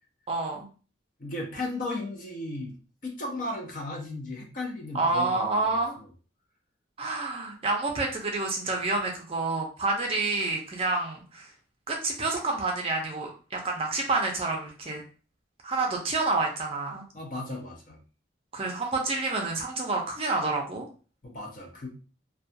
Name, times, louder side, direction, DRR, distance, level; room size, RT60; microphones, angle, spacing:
voice 1, 0.3-0.7 4.9-6.0 7.0-11.5 11.9-15.0 15.6-17.0 18.5-20.9, right 3 dB, 30° right, 1 dB, 0.5 m, -28 dB
voice 2, 1.2-2.7 3.0-5.8 17.1-18.0 21.2-21.9, left 2 dB, 45° left, 1 dB, 0.6 m, -35 dB
2.3 x 2.2 x 2.6 m, 0.38 s
head